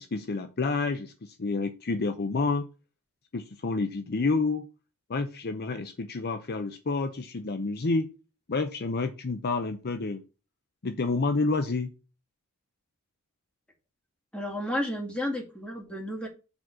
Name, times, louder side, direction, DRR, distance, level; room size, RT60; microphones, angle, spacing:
voice 1, 0.0-2.7 3.3-4.7 5.1-8.1 8.5-10.2 10.8-11.9, left 3 dB, 45° left, 8 dB, 0.7 m, -29 dB
voice 2, 14.3-16.3, left 1 dB, 5° left, -1 dB, 2.3 m, -32 dB
7.0 x 4.2 x 6.0 m, 0.31 s
head